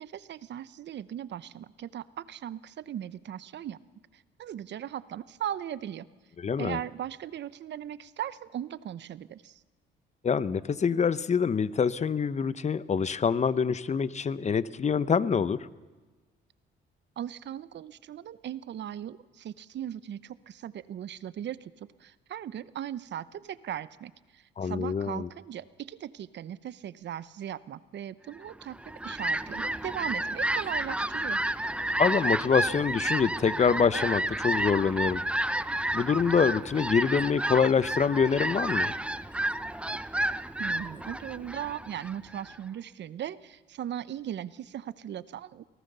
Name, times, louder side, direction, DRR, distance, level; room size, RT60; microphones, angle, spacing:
voice 1, 0.0-3.8 4.1-6.1 6.6-9.6 17.2-21.7 22.0-31.4 40.6-45.6, right 10 dB, 65° right, 17 dB, 0.8 m, -38 dB
voice 2, 6.4-6.8 10.2-15.7 24.6-25.3 32.0-35.2 35.9-38.9, left 6 dB, 35° left, 17 dB, 0.8 m, -25 dB
Fowl, 28.6-42.6, right 1 dB, 5° right, 0.6 m, -31 dB
24.0 x 18.0 x 6.8 m, 1.3 s
cardioid pair, 90°, 20 cm